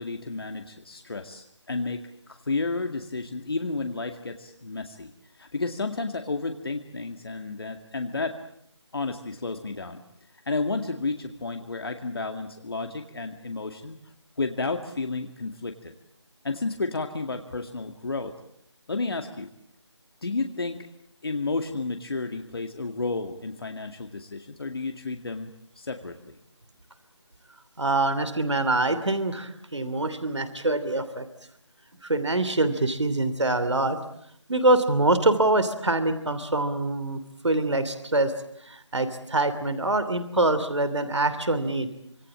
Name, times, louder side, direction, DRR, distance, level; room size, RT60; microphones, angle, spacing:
voice 1, 0.0-8.4 8.9-10.0 10.5-14.0 14.4-15.9 16.4-18.3 18.9-19.5 20.2-20.9 21.2-26.4, left 3 dB, 55° left, 5 dB, 2.1 m, -32 dB
voice 2, 27.8-31.3 32.0-34.0 34.5-38.3 38.6-41.9, right 2 dB, 75° right, 11 dB, 3.0 m, -24 dB
26.0 x 23.5 x 8.8 m, 0.70 s
figure-of-eight pair, 165°, 15 cm